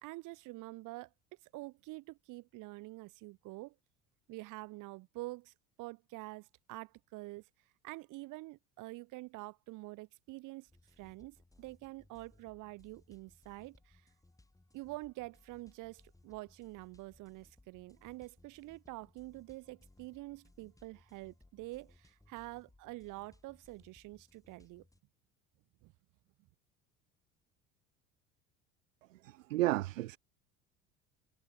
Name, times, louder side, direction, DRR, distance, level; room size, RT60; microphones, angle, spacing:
voice 1, 0.0-1.1 1.5-3.8 4.3-7.5 7.8-10.7 11.0-14.0 14.7-24.8 25.8-25.9, right 21 dB, 45° right, 1.8 m, -47 dB
sound 1, 10.7-25.0, left 2 dB, 10° left, 3.8 m, -65 dB
voice 2, 29.2-30.2, right 17 dB, 65° right, 0.6 m, -32 dB
figure-of-eight pair, 65°, 41 cm